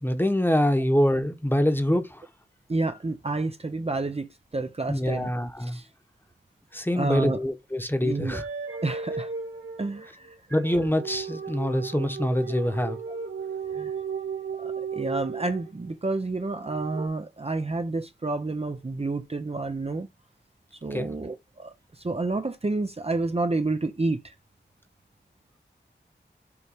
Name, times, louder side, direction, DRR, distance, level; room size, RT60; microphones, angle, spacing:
voice 1, 0.0-2.2 4.9-5.8 6.7-8.4 10.5-13.0 20.9-21.2, equal, 10° left, 1.1 m, -25 dB
voice 2, 2.7-5.3 5.6-5.9 7.0-7.4 8.0-8.4 8.8-9.3 9.8-10.3 13.7-13.9 14.6-20.1 20.7-24.3, right 2 dB, 30° right, 0.7 m, -29 dB
sound 1, 8.3-15.9 16.6-17.1, right 6 dB, 85° right, 2.5 m, -35 dB
7.1 x 3.3 x 4.9 m
wide cardioid pair, 70°, 19 cm